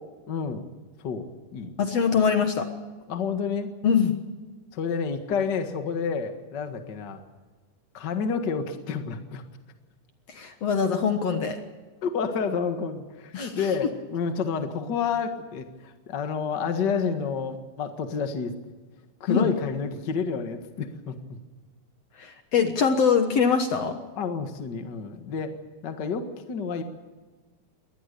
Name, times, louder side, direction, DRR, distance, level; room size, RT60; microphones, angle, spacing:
voice 1, 0.3-0.6 1.0-1.7 2.1-2.3 3.1-3.7 4.7-7.2 7.9-9.4 12.0-18.5 19.2-21.4 24.2-25.5 25.8-26.8, left 5 dB, 40° left, 6 dB, 1.8 m, -29 dB
voice 2, 1.8-2.7 3.8-4.1 10.3-11.6 13.3-13.5 19.3-19.4 22.2-24.0, left 6 dB, 55° left, 6 dB, 2.2 m, -23 dB
23.0 x 19.0 x 6.8 m, 1.3 s
omnidirectional pair, 3.8 m